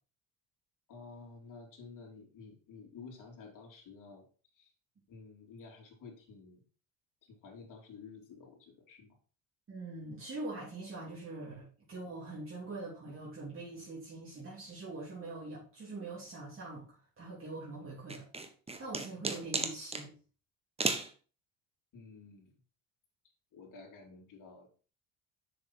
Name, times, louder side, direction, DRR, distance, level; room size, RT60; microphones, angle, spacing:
voice 1, 0.9-4.3 4.5-4.7 5.1-6.6 7.2-9.1 21.9-22.5 23.5-24.7, left 4 dB, 50° left, -1 dB, 3.7 m, -52 dB
voice 2, 9.7-16.9 17.2-18.3 18.8-20.1, right 2 dB, 35° right, -6 dB, 3.3 m, -43 dB
sound 1, 18.1-20.1 20.8-21.1, right 3 dB, 15° right, 1.3 m, -34 dB
6.9 x 6.4 x 4.5 m, 0.37 s
cardioid pair, 100°, 39 cm